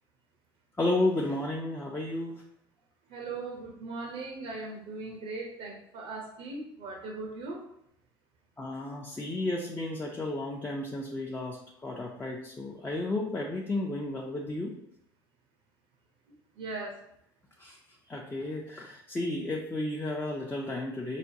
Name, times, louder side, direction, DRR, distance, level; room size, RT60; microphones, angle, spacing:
voice 1, 0.8-2.4 8.6-14.7 17.6-17.8 18.1-21.2, left 2 dB, 15° left, -2 dB, 0.6 m, -32 dB
voice 2, 3.1-7.7 16.6-17.0, right 3 dB, 65° right, 1 dB, 0.7 m, -39 dB
5.0 x 2.2 x 2.7 m, 0.74 s
hypercardioid pair, 75°, 12 cm